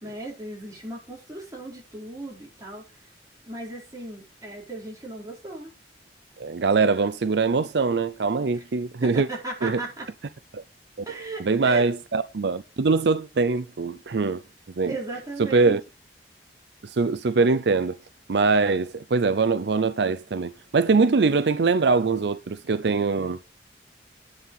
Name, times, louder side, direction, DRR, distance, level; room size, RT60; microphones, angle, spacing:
voice 1, 0.0-2.9 3.4-5.7 8.5-8.6 9.0-10.1 11.1-11.8 14.9-15.8, right 2 dB, 20° right, 4.2 m, -36 dB
voice 2, 6.4-9.3 9.6-9.8 10.5-10.6 11.4-14.4 14.8-14.9 15.4-15.8 16.8-18.0 18.3-23.4, right 4 dB, 75° right, 0.5 m, -22 dB
9.9 x 5.7 x 5.5 m
head